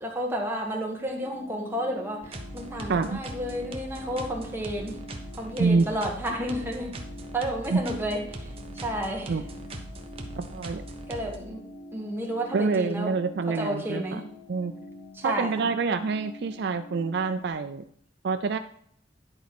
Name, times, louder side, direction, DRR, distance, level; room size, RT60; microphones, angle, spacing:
voice 1, 0.0-5.0 5.3-6.9 7.3-8.5 8.8-9.4 11.1-11.6 11.9-13.1 13.6-14.3 15.1-15.7, equal, 10° right, -1 dB, 1.6 m, -31 dB
sound 1, 1.2-17.5, left 1 dB, 10° left, 2.1 m, -46 dB
sound 2, 2.2-11.4, right 1 dB, 30° right, 1.0 m, -40 dB
voice 2, 2.9-3.2 5.6-5.9 7.7-7.8 9.3-9.4 10.4-10.8 12.5-14.2 14.5-14.7 15.2-17.8 18.2-18.6, right 4 dB, 60° right, 9 dB, 0.4 m, -26 dB
11.0 x 4.2 x 5.9 m, 0.65 s
head